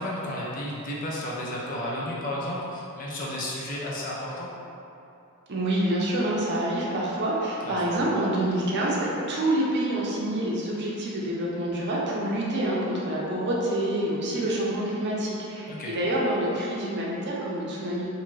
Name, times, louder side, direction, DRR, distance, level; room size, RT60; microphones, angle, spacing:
voice 1, 0.0-4.5 7.6-8.0 15.7-15.9, left 1 dB, 40° left, -5 dB, 0.4 m, -32 dB
voice 2, 5.5-18.1, right 1 dB, 50° right, -5 dB, 0.5 m, -27 dB
2.6 x 2.5 x 3.0 m, 2.7 s
head